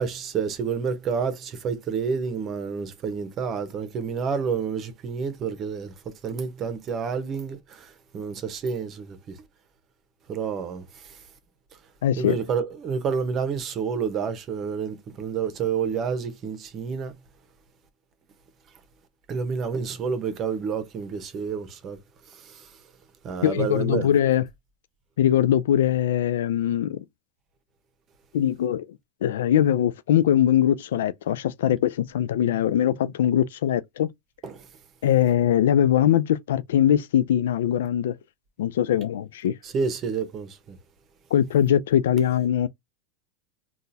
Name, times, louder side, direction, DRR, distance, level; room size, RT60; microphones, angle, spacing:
voice 1, 0.0-9.4 10.3-11.2 12.2-17.1 19.3-22.0 22.3-22.7 23.2-24.1 34.4-34.7 39.6-40.8, right 6 dB, 40° right, 0.9 m, -29 dB
voice 2, 12.0-12.4 23.4-24.4 25.2-27.0 28.3-28.9 29.2-34.1 35.0-38.2 38.6-39.6 41.3-42.7, left 10 dB, 85° left, 0.3 m, -21 dB
3.7 x 2.4 x 2.7 m
supercardioid pair, 115°, 0 cm